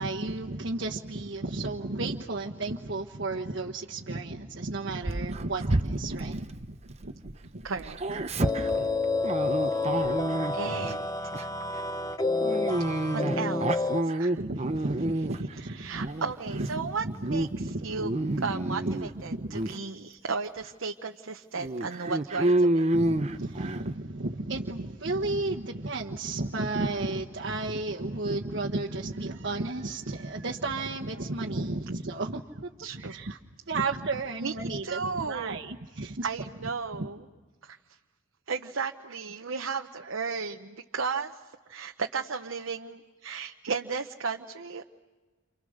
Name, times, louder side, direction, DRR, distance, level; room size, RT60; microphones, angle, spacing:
voice 1, 0.0-7.7 8.1-8.2 14.4-16.1 16.5-19.6 22.9-33.4 33.7-36.3 37.0-37.1, right 2 dB, 60° right, -2 dB, 1.3 m, -33 dB
Dog, 5.0-7.3 7.6-10.9 11.3-11.6 12.4-15.5 15.9-16.7 17.1-17.5 17.8-19.1 19.5-19.8 20.4-20.5 20.8-20.9 21.6-23.9, right 1 dB, 30° right, 0.9 m, -29 dB
voice 2, 7.6-8.2 10.5-11.1 11.4-11.5 13.1-14.4 15.8-17.0 17.3-17.5 17.8-18.1 18.4-22.9 32.8-33.1 34.4-34.5 34.8-35.6 36.2-37.2 37.6-37.8 38.5-41.4 41.7-44.8, right 5 dB, 85° right, 4 dB, 0.9 m, -34 dB
sound 1, 8.4-14.0, left 3 dB, 20° left, 0.9 m, -29 dB
30.0 x 28.5 x 6.6 m, 1.3 s
head